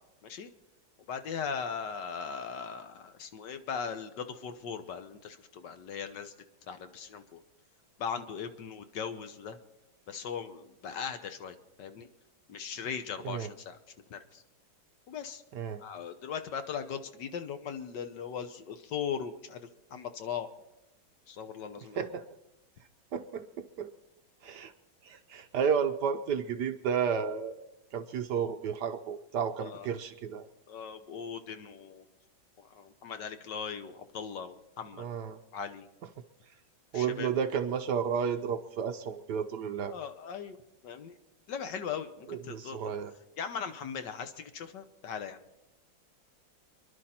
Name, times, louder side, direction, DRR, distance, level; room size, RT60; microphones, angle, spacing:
voice 1, 1.1-6.3 6.7-7.4 8.0-9.6 10.1-12.1 12.5-13.8 14.1-14.4 15.1-15.4 15.8-20.5 21.3-22.0 29.6-29.9 30.7-32.0 32.6-35.1 35.5-35.9 36.9-37.3 39.9-40.6 40.8-41.1 41.5-42.8 43.4-45.4, left 7 dB, 65° left, 9 dB, 1.5 m, -39 dB
voice 2, 22.0-22.3 23.1-23.9 24.4-24.7 25.0-27.5 27.9-30.5 35.0-35.4 36.9-39.9 42.3-43.1, right 7 dB, 65° right, 8 dB, 1.2 m, -32 dB
27.5 x 11.0 x 4.3 m, 0.92 s
omnidirectional pair, 2.2 m